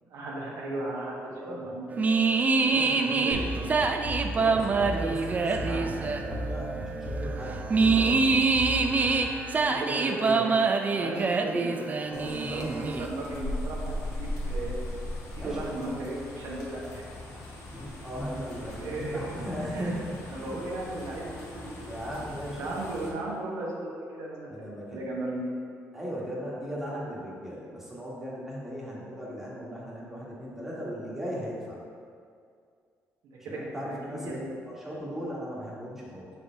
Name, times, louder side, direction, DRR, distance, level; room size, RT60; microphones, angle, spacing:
voice 1, 0.1-2.2 3.1-3.9 9.5-10.5 10.9-11.9 12.2-14.8 15.3-17.1 18.8-19.3 19.6-19.9 20.3-22.0 22.6-24.5 24.9-25.5 33.2-34.5, right 2 dB, 80° right, -4 dB, 1.2 m, -36 dB
voice 2, 1.3-1.7 2.6-3.6 4.3-8.4 12.1-12.7 15.4-15.7 17.7-20.6 21.6-22.7 24.5-25.1 25.9-31.8 33.4-36.3, equal, 5° right, -6 dB, 1.4 m, -37 dB
sound 1, 1.9-13.1, right 4 dB, 30° right, 0.4 m, -26 dB
sound 2, 3.3-9.9, equal, 15° left, 1.3 m, -36 dB
sound 3, 12.1-23.1, left 1 dB, 65° left, 1.3 m, -39 dB
5.0 x 4.3 x 4.5 m, 2.2 s
cardioid pair, 105°, 6 cm